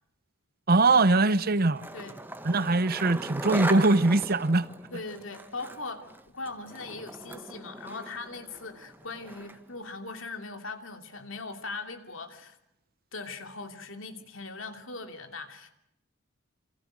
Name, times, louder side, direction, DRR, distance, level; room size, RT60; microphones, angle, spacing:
voice 1, 0.7-1.9 2.4-4.7, right 2 dB, 50° right, 0.9 m, -22 dB
Skateboard, 1.4-9.7, right 1 dB, 10° right, 1.5 m, -39 dB
voice 2, 4.9-6.1 6.3-12.6 13.1-15.7, left 3 dB, 70° left, 2.9 m, -40 dB
28.5 x 26.5 x 6.4 m
head